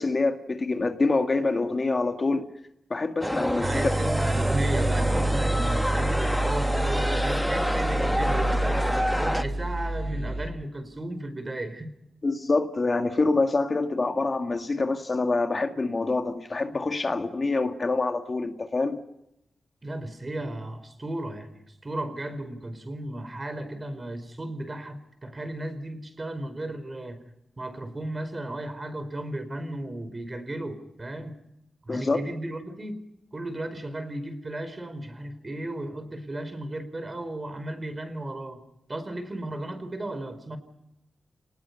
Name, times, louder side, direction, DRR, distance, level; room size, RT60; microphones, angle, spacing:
voice 1, 0.0-2.5 2.9-3.9 12.2-19.0 31.9-32.2, left 3 dB, 40° left, 1.9 m, -26 dB
sound 1, 3.2-9.4, equal, 5° left, 1.2 m, -28 dB
voice 2, 3.4-11.9 19.8-27.2 27.6-31.4 31.9-33.1 33.3-38.6 38.9-40.6, right 1 dB, 30° right, 4.6 m, -35 dB
sound 2, 3.6-10.5, right 2 dB, 50° right, 7.5 m, -27 dB
29.5 x 20.0 x 5.5 m
cardioid pair, 70°, 0 cm